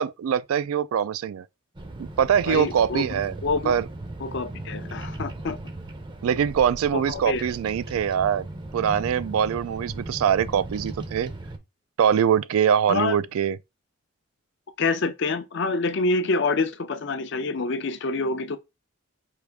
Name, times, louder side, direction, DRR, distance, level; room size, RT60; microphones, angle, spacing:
voice 1, 0.0-1.4 2.2-3.4 3.7-3.8 6.2-8.4 8.7-11.3 12.0-13.6, right 8 dB, 85° right, 0.3 m, -23 dB
Bird vocalization bird call bird song, 1.7-11.6, right 1 dB, 20° right, 0.5 m, -37 dB
voice 2, 2.5-3.0 3.4-3.8 4.2-5.6 6.9-7.5 12.9-13.1 14.8-18.6, left 3 dB, 55° left, 0.5 m, -26 dB
4.8 x 2.4 x 3.4 m
head